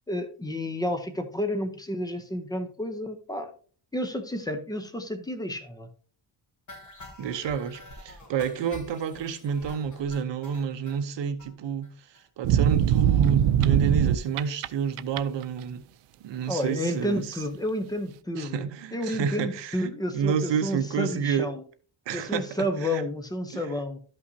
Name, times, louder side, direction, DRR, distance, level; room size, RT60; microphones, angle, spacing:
voice 1, 0.1-3.5 3.9-5.9 16.5-21.6 22.1-24.0, left 1 dB, 10° left, 0.6 m, -31 dB
sound 1, 6.7-11.0 11.4-11.5 11.8-11.9 12.1-12.3 12.6-12.7, left 1 dB, 35° left, 1.3 m, -47 dB
voice 2, 7.2-15.8 16.2-17.4 18.4-21.5 22.1-23.0 23.5-23.7, right 7 dB, 60° right, 0.9 m, -29 dB
sound 2, 12.4-14.7 15.0-15.4, right 10 dB, 85° right, 0.6 m, -21 dB
12.5 x 5.6 x 2.7 m
wide cardioid pair, 175°, 49 cm